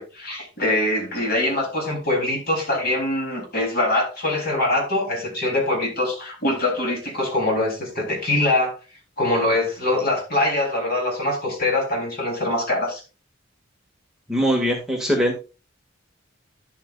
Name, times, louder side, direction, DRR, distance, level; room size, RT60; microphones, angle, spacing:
voice 1, 0.0-8.8 9.2-13.0, left 1 dB, 50° left, 3.5 m, -23 dB
voice 2, 14.3-15.4, equal, 5° right, 2.0 m, -21 dB
11.5 x 7.4 x 2.5 m
head